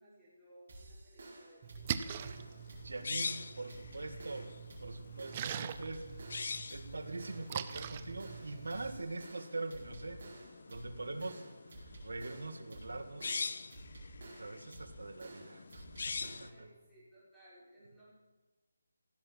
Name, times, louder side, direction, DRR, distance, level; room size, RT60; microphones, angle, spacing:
voice 1, 0.0-2.4 2.7-2.8 11.2-11.7 16.4-18.1, right 1 dB, ahead, -13 dB, 5.2 m, -61 dB
sound 1, 0.7-16.7, right 2 dB, 45° right, 4.9 m, -52 dB
Splash splatter, 1.6-9.0, right 9 dB, 20° right, 0.6 m, -43 dB
sound 2, 1.9-16.5, left 4 dB, 50° left, 0.6 m, -45 dB
voice 2, 2.8-4.5 4.8-6.2 6.7-10.2 10.7-11.4 12.0-13.6 14.4-16.5, right 2 dB, 80° right, 5 dB, 1.9 m, -43 dB
16.0 x 7.8 x 7.3 m, 1.3 s
figure-of-eight pair, 170°, 0 cm